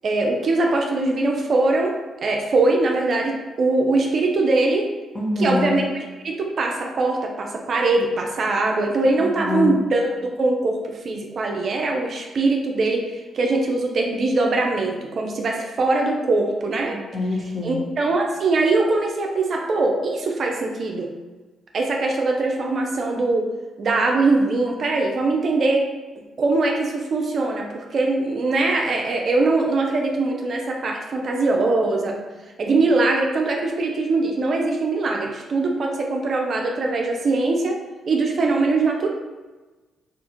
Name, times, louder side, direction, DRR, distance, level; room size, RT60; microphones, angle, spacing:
voice 1, 0.0-4.9 5.4-13.0 13.3-17.0 17.6-21.1 21.7-23.5 23.8-25.9 26.4-32.2 32.6-37.8 38.1-39.1, right 3 dB, 55° right, 1 dB, 0.4 m, -22 dB
voice 2, 5.1-5.8 9.4-9.8 17.1-17.8, left 2 dB, 25° left, -3 dB, 0.8 m, -24 dB
2.4 x 2.3 x 2.9 m, 1.2 s
hypercardioid pair, 40°, 0 cm